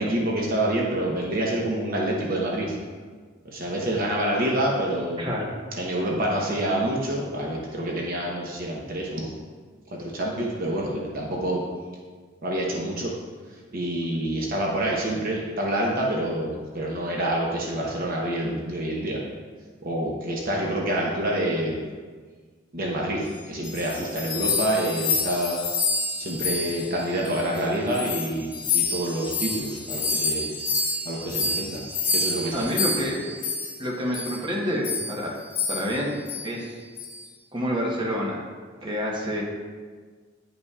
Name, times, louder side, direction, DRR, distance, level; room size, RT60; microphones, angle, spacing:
voice 1, 0.0-2.8 3.4-5.3 5.7-9.3 9.9-11.6 12.4-13.1 13.7-19.2 19.8-21.8 22.7-25.6 26.2-30.5 31.1-31.8 32.1-33.1, right 1 dB, 50° right, -2 dB, 0.9 m, -27 dB
voice 2, 5.2-5.5 32.5-33.2 33.8-35.4 35.7-36.1 36.4-36.8 37.5-38.4 38.8-39.4, equal, 25° right, -3 dB, 1.0 m, -28 dB
sound 1, 23.4-27.6 27.9-33.8 34.1-34.4 34.8-35.2 35.5-36.0 36.3-36.5 37.0-37.2, left 4 dB, 45° left, 1.3 m, -28 dB
9.8 x 5.4 x 2.4 m, 1.5 s
head